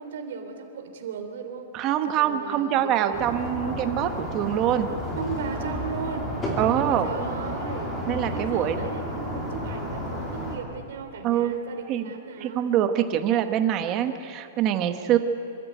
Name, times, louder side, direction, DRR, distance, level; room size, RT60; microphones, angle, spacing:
voice 1, 0.0-1.7 2.0-4.1 5.1-6.4 7.0-12.7, right 6 dB, 55° right, 4 dB, 3.2 m, -36 dB
voice 2, 1.7-4.9 6.6-7.1 8.1-8.8 11.2-11.5 11.9-12.1 12.4-15.2, right 11 dB, 25° right, 8 dB, 1.1 m, -24 dB
sound 1, 3.1-10.6, equal, 15° left, 3.2 m, -32 dB
26.0 x 13.5 x 9.3 m, 2.9 s
hypercardioid pair, 175°, 0 cm